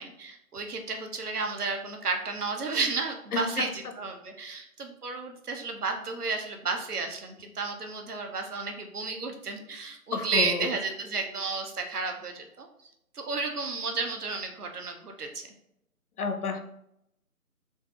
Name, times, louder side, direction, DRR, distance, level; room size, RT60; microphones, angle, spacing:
voice 1, 0.0-12.7 13.1-15.5, right 4 dB, 90° right, 4 dB, 0.7 m, -32 dB
voice 2, 3.3-3.9 10.1-10.7 16.2-16.6, left 4 dB, 80° left, 6 dB, 0.6 m, -31 dB
3.9 x 2.0 x 2.3 m, 0.78 s
figure-of-eight pair, 155°, 44 cm